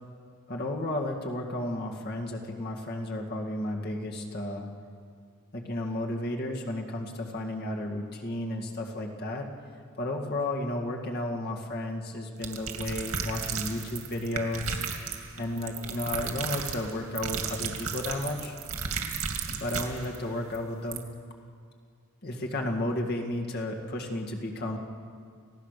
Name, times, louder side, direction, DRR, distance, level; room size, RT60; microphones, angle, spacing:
voice 1, 0.5-4.7 5.5-9.5 10.0-14.8 15.4-18.5 19.5-21.0 22.2-24.8, left 1 dB, 50° left, 1 dB, 2.1 m, -33 dB
sound 1, 12.4-20.2 20.5-20.6 20.9-21.0, right 6 dB, 85° right, 2.4 m, -34 dB
29.5 x 16.5 x 6.7 m, 2.1 s
head